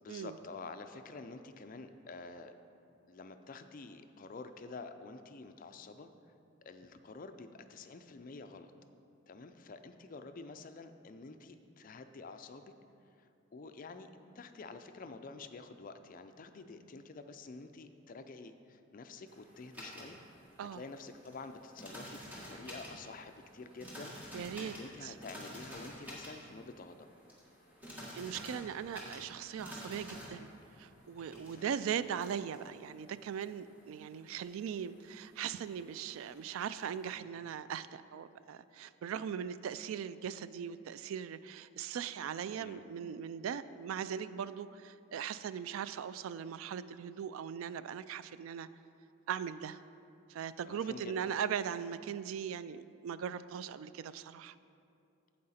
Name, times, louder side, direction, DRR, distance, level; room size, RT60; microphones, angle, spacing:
voice 1, 0.0-2.5 3.1-6.1 6.6-8.7 9.3-12.7 13.1-14.1 14.3-20.2 20.6-22.2 22.5-27.1 31.5-31.7 42.6-42.8 50.7-51.3, left 3 dB, 40° left, 8 dB, 0.4 m, -49 dB
sound 1, 19.3-37.1, equal, 10° right, 1.6 m, -51 dB
voice 2, 24.3-24.7 25.0-25.1 28.1-30.5 30.8-48.7 49.3-49.8 50.3-54.6, right 8 dB, 85° right, 15 dB, 0.3 m, -39 dB
8.6 x 7.7 x 4.2 m, 2.6 s
head